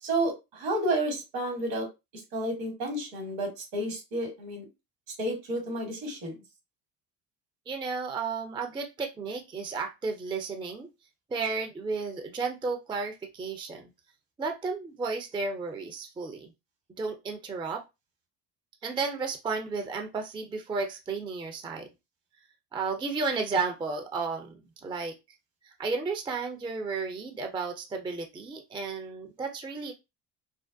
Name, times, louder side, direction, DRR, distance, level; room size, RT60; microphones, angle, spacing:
voice 1, 0.0-1.9 2.3-4.6 5.2-6.4, right 1 dB, 70° right, 3 dB, 1.3 m, -31 dB
voice 2, 7.7-10.9 11.3-13.9 14.4-16.5 17.0-17.8 18.8-21.9 22.7-25.1 25.6-29.9, right 4 dB, 10° right, 4 dB, 0.4 m, -33 dB
2.3 x 2.1 x 2.5 m, 0.24 s
hypercardioid pair, 60°, 46 cm